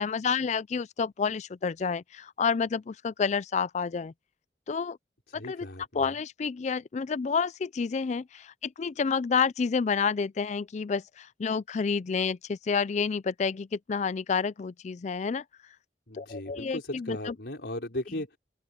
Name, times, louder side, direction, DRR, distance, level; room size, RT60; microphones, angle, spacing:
voice 1, 0.0-4.1 4.7-5.0 5.3-5.7 6.0-15.4 16.1-17.3, left 5 dB, 40° left, 0.4 m, -29 dB
voice 2, 5.3-6.1 16.1-18.4, left 1 dB, 75° left, 4.8 m, -37 dB
head